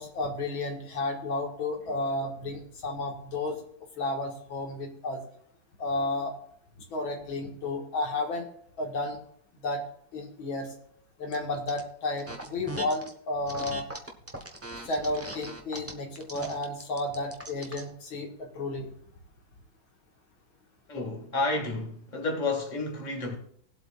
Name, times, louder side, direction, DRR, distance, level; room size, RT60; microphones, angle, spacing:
voice 1, 0.0-3.6 4.0-5.2 5.8-6.3 6.9-8.4 8.8-9.2 9.6-9.8 10.1-10.7 11.2-13.9 14.9-18.9, left 2 dB, 85° left, 2.5 m, -32 dB
sound 1, 11.3-11.8 12.2-13.1 13.5-17.9, right 2 dB, 15° right, 0.6 m, -40 dB
voice 2, 20.9-23.4, left 2 dB, 25° left, 1.7 m, -30 dB
20.0 x 7.9 x 2.4 m
omnidirectional pair, 2.2 m